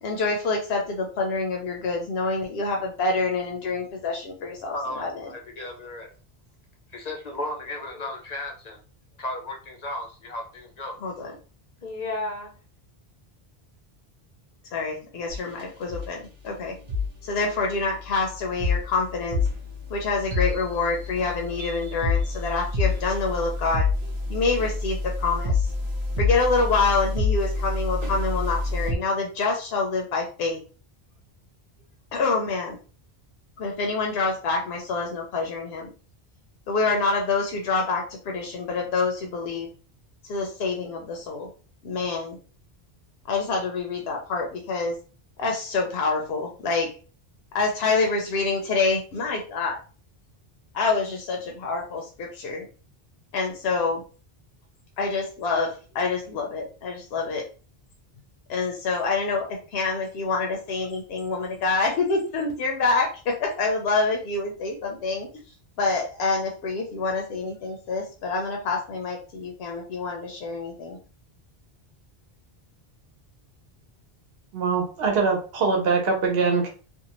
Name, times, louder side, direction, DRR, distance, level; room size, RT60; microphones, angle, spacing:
voice 1, 0.0-5.1 11.0-11.3 14.7-16.2 16.4-16.7 17.2-19.4 19.9-23.8 24.3-25.7 26.2-30.6 32.1-32.8 33.6-35.9 36.7-39.7 40.3-41.5 41.8-42.4 43.3-45.0 45.4-46.9 47.5-49.8 50.7-52.6 53.3-54.0 55.0-57.4 58.5-65.3 65.8-71.0, left 3 dB, 80° left, 1 dB, 0.8 m, -26 dB
voice 2, 4.7-6.1 6.9-8.8 9.2-11.0 11.8-12.5, left 1 dB, 50° left, 2 dB, 0.5 m, -34 dB
sound 1, 15.3-15.6 15.9-16.1 16.9-17.1 17.7-28.9, left 3 dB, 45° right, 0.7 m, -27 dB
voice 3, 74.5-76.7, right 4 dB, 70° right, 1 dB, 0.9 m, -23 dB
2.6 x 2.1 x 2.9 m, 0.37 s
omnidirectional pair, 1.0 m